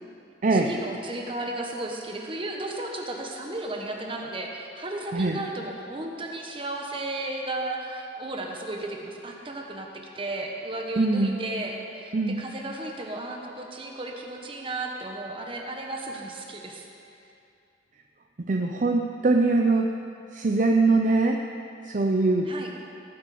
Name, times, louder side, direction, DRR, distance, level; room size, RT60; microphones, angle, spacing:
voice 1, 0.5-16.9 22.5-22.7, right 2 dB, 30° right, 1 dB, 1.3 m, -34 dB
voice 2, 11.0-11.4 12.1-12.4 18.5-19.9 20.3-21.4 21.9-22.5, right 3 dB, 45° right, 3 dB, 0.6 m, -22 dB
18.5 x 7.6 x 5.1 m, 2.7 s
head